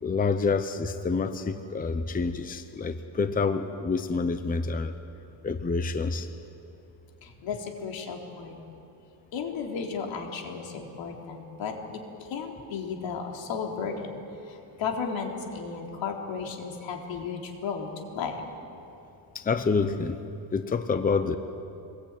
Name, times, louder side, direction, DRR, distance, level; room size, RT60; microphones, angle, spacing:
voice 1, 0.0-4.9 5.4-6.3 19.3-20.2 20.5-21.4, left 4 dB, 20° left, 9 dB, 0.8 m, -27 dB
voice 2, 7.2-8.6 9.3-18.4, left 5 dB, 85° left, 1 dB, 3.7 m, -34 dB
25.5 x 21.0 x 9.1 m, 2.8 s
cardioid pair, 160°, 44 cm